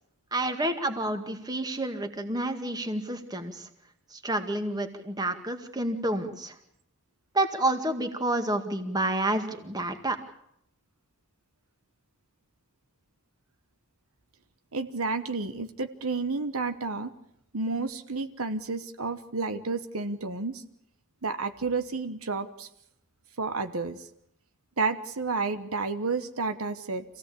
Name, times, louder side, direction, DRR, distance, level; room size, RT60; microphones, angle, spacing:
voice 1, 0.3-3.7 4.1-6.6 7.3-10.2, right 1 dB, 20° right, 6 dB, 1.9 m, -29 dB
voice 2, 14.7-17.1 17.5-20.6 21.2-22.7 23.4-24.1 24.8-27.0, right 4 dB, 75° right, 9 dB, 1.2 m, -31 dB
26.5 x 16.5 x 8.5 m, 0.75 s
head